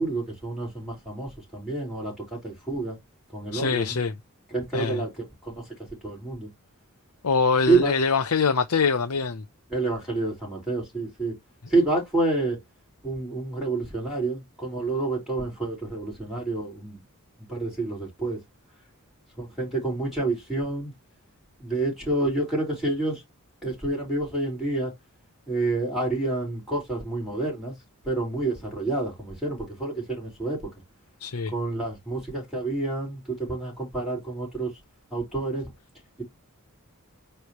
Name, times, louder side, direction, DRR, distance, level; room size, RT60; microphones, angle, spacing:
voice 1, 0.0-3.0 3.3-3.9 4.5-5.6 6.0-6.5 7.7-7.9 9.7-11.4 11.7-12.6 13.0-17.0 17.5-18.4 19.4-20.9 21.6-23.2 23.6-24.9 25.5-27.7 28.0-30.7 31.5-34.7 35.1-35.7, right 2 dB, ahead, 4.3 m, -28 dB
voice 2, 3.5-4.1 4.7-5.0 7.2-9.4 31.2-31.5, left 4 dB, 90° left, 0.7 m, -24 dB
9.4 x 3.4 x 3.0 m
head